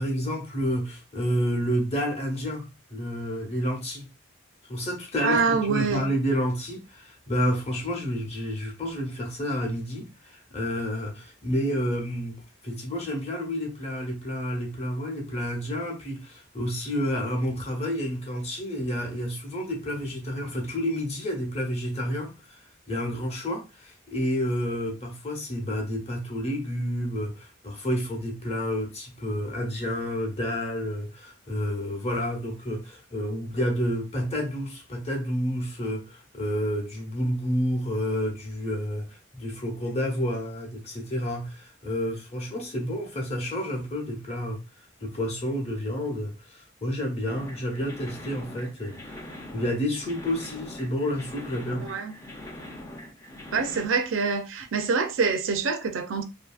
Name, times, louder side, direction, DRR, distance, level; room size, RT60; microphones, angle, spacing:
voice 1, 0.0-4.1 4.7-5.4 5.7-12.4 12.6-22.6 22.9-44.6 45.0-49.2 49.5-51.9, equal, 30° left, 0.8 m, -30 dB
voice 2, 5.2-6.1 51.8-52.1 53.5-56.2, right 5 dB, 85° right, 0.5 m, -25 dB
sound 1, 47.3-53.9, left 1 dB, 15° left, 0.4 m, -42 dB
2.7 x 2.6 x 2.3 m
head